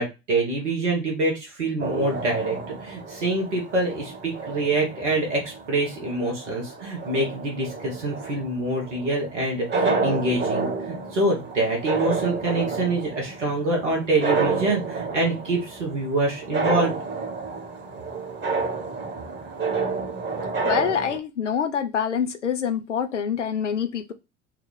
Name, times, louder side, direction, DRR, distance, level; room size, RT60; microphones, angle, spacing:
voice 1, 0.0-16.9, right 2 dB, 85° right, -1 dB, 1.2 m, -26 dB
sound 1, 1.8-21.2, right 4 dB, 30° right, 1.1 m, -30 dB
voice 2, 20.6-24.1, left 7 dB, 90° left, 8 dB, 0.5 m, -26 dB
3.7 x 2.3 x 3.1 m, 0.24 s
figure-of-eight pair, 60°, 35 cm